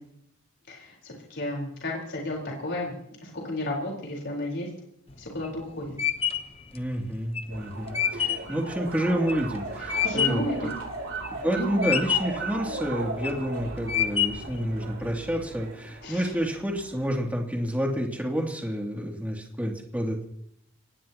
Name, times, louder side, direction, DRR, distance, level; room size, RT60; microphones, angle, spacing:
voice 1, 0.7-2.9 3.2-4.7 5.2-5.9 10.0-10.7 11.5-12.0 16.0-16.3, left 1 dB, 55° left, -2 dB, 4.5 m, -33 dB
sound 1, 5.1-10.5 11.0-11.5 11.8-12.5 13.0-13.5 13.9-14.6, left 9 dB, 30° left, 1.0 m, -27 dB
voice 2, 6.7-10.7 11.4-20.2, equal, 5° right, -1 dB, 2.8 m, -29 dB
sound 2, 7.5-17.2, right 3 dB, 75° right, 3.5 m, -37 dB
25.0 x 19.5 x 3.0 m, 0.74 s
head